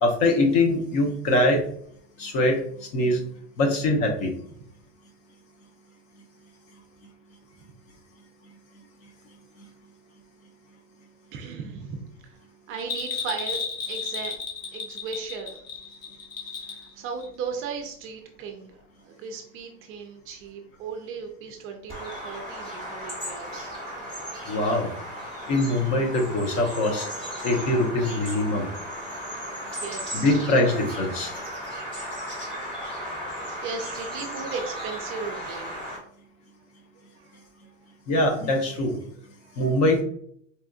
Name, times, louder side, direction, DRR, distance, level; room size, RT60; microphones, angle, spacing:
voice 1, 0.0-1.6 2.2-2.6 2.9-3.2 3.6-4.3 24.5-24.9 25.5-27.1 27.4-28.7 30.1-31.4 38.1-39.0 39.6-40.0, left 1 dB, 45° left, 3 dB, 0.8 m, -23 dB
voice 2, 11.3-12.4 12.7-13.6 13.9-14.4 14.7-15.6 16.6-23.7 29.6-30.4 32.6-33.0 33.5-35.8 37.1-37.4 39.4-39.6, right 5 dB, 35° right, 4 dB, 0.4 m, -37 dB
Bell, 12.8-16.9 17.2-17.3, left 5 dB, 90° left, 1.3 m, -33 dB
Bird vocalization bird call bird song, 21.9-36.0, equal, 15° left, 1.2 m, -35 dB
4.2 x 2.5 x 2.3 m, 0.66 s
supercardioid pair, 135°, 37 cm